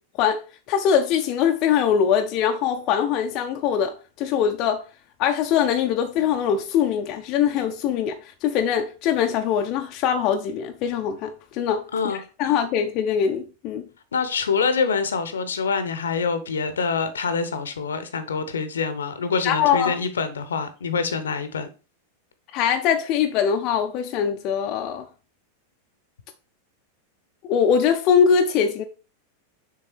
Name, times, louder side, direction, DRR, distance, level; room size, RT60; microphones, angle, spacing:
voice 1, 0.7-4.8 5.2-13.8 19.4-19.9 22.5-25.1 27.4-28.8, left 8 dB, 40° left, 0.5 m, -22 dB
voice 2, 14.1-21.7, left 5 dB, 70° left, 0.8 m, -25 dB
6.5 x 3.6 x 4.4 m
figure-of-eight pair, 90°, 0 cm